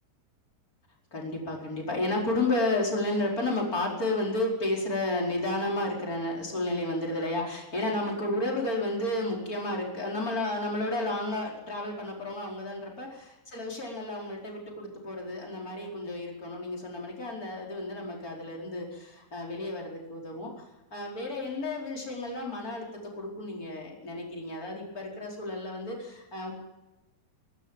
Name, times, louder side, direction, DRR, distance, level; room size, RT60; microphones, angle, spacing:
voice 1, 1.1-13.1 13.5-20.5 20.9-22.9 23.2-26.5, left 2 dB, 20° left, -2 dB, 5.0 m, -32 dB
23.5 x 12.5 x 9.0 m, 1.0 s
omnidirectional pair, 4.5 m